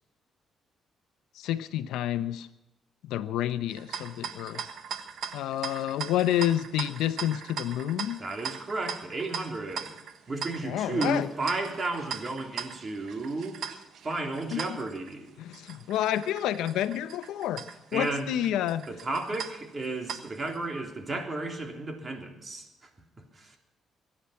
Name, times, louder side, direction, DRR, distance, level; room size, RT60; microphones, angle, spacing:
voice 1, 1.4-2.5 3.0-4.6 5.3-8.2 10.6-11.3 14.5-14.6 15.4-17.6 17.9-18.8, left 12 dB, 90° left, 12 dB, 0.9 m, -29 dB
sound 1, 3.7-20.6, right 7 dB, 70° right, 1.3 m, -40 dB
voice 2, 8.2-10.0 10.3-13.6 14.0-15.3 17.9-18.3 18.9-22.7 23.3-23.6, right 2 dB, 35° right, 4 dB, 3.5 m, -33 dB
23.0 x 10.0 x 5.8 m, 0.93 s
cardioid pair, 90°, 0 cm